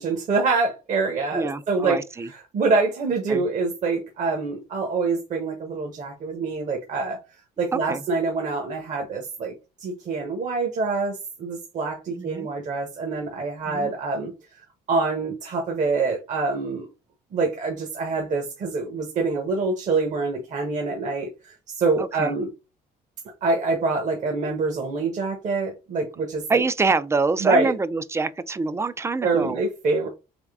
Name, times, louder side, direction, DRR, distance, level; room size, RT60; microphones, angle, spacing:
voice 1, 0.0-2.0 2.5-7.2 7.6-9.5 9.8-16.9 17.3-22.5 23.4-26.6 27.4-27.7 29.2-30.1, right 3 dB, 45° right, 1.0 m, -25 dB
voice 2, 1.3-2.3 3.3-3.4 7.7-8.0 12.1-12.5 13.7-13.9 22.0-22.3 26.5-29.6, right 4 dB, 15° right, 0.3 m, -26 dB
3.5 x 3.1 x 3.5 m
cardioid pair, 110°, 17 cm